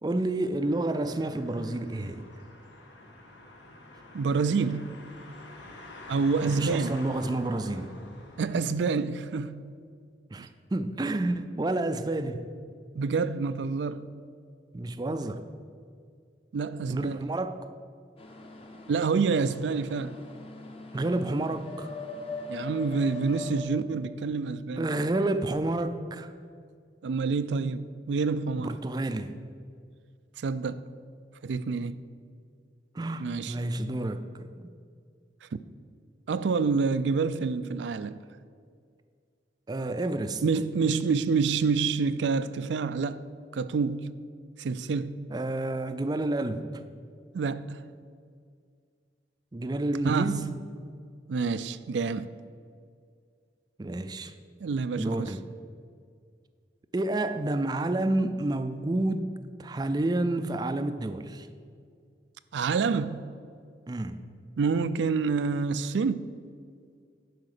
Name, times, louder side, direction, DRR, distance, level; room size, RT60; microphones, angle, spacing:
voice 1, 0.0-2.3 6.4-7.9 10.3-12.5 14.7-15.4 16.9-17.7 20.9-21.9 24.8-26.3 28.6-29.4 32.9-34.7 39.7-40.4 45.3-46.7 49.5-50.4 53.8-54.3 55.0-55.4 56.9-59.3 59.6-61.5 63.9-64.2, right 2 dB, 25° right, 0.4 m, -30 dB
sound 1, 0.6-8.6, left 2 dB, 85° left, 1.5 m, -47 dB
voice 2, 4.1-4.9 6.1-7.0 8.4-9.6 10.4-10.5 12.9-14.1 16.5-17.3 18.9-20.2 22.5-24.9 27.0-28.7 30.4-30.8 31.4-32.0 33.2-33.5 35.5-35.6 36.3-38.2 40.4-43.2 43.5-44.1 44.6-45.1 47.3-47.8 50.0-50.5 51.3-52.3 54.6-55.3 62.5-63.3 64.6-66.3, right 5 dB, 85° right, 0.4 m, -27 dB
sound 2, 18.2-23.6, left 3 dB, 35° left, 1.0 m, -41 dB
11.0 x 5.0 x 6.6 m
head